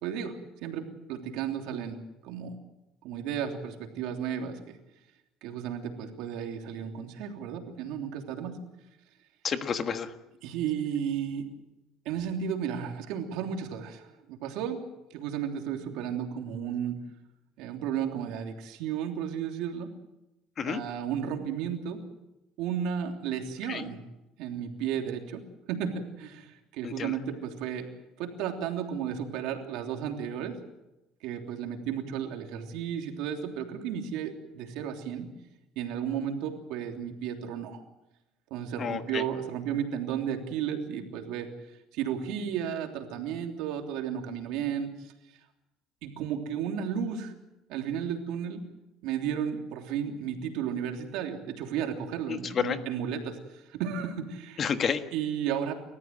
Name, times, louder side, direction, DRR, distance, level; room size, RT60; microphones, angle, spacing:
voice 1, 0.0-2.6 3.0-4.8 5.4-8.6 10.4-11.5 12.0-14.8 15.1-17.0 17.6-19.9 20.6-22.0 22.6-24.0 24.4-25.4 25.7-27.9 28.2-30.6 31.2-35.3 35.7-37.8 38.5-41.5 41.9-45.1 46.0-47.3 47.7-48.6 49.0-54.6 55.1-55.7, right 8 dB, 75° right, 3 dB, 3.2 m, -33 dB
voice 2, 9.4-10.1 20.6-20.8 23.7-23.9 26.8-27.1 38.8-39.2 52.3-52.8 54.6-55.0, left 7 dB, 35° left, 9 dB, 1.5 m, -30 dB
29.5 x 14.0 x 7.7 m, 0.96 s
cardioid pair, 130°, 0 cm